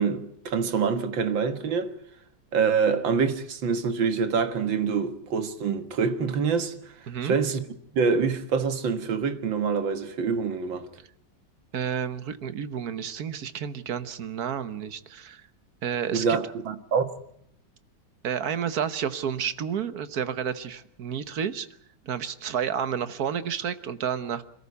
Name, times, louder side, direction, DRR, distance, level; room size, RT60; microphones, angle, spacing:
voice 1, 0.0-1.9 2.5-6.7 7.2-7.6 7.9-10.9 16.1-17.2, right 5 dB, 90° right, 2.3 m, -25 dB
voice 2, 11.7-15.4 15.8-16.4 18.2-21.7 22.0-24.4, right 8 dB, 55° right, 1.5 m, -30 dB
26.5 x 14.0 x 9.7 m
omnidirectional pair, 2.0 m